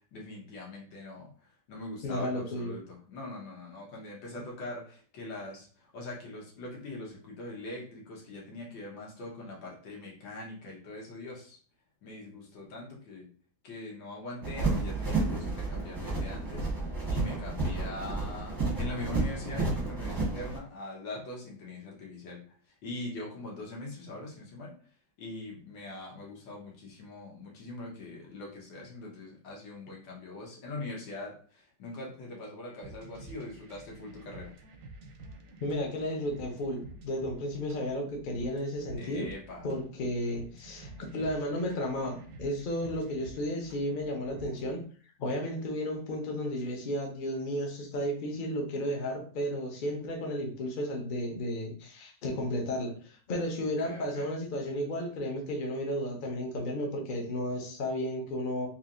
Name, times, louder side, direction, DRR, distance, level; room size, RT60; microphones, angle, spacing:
voice 1, 0.1-11.6 12.0-13.3 13.6-16.7 17.1-22.4 22.8-24.7 25.2-34.6 38.9-39.7 53.8-54.3, left 2 dB, 85° left, -2 dB, 1.9 m, -42 dB
voice 2, 2.0-2.7 35.6-39.3 39.6-44.8 45.2-58.7, equal, 50° left, 1 dB, 0.6 m, -33 dB
sound 1, 14.4-20.6, right 3 dB, 20° right, 0.6 m, -31 dB
sound 2, 32.8-44.8, right 2 dB, 65° right, 0.8 m, -49 dB
4.2 x 2.9 x 2.5 m, 0.43 s
omnidirectional pair, 2.0 m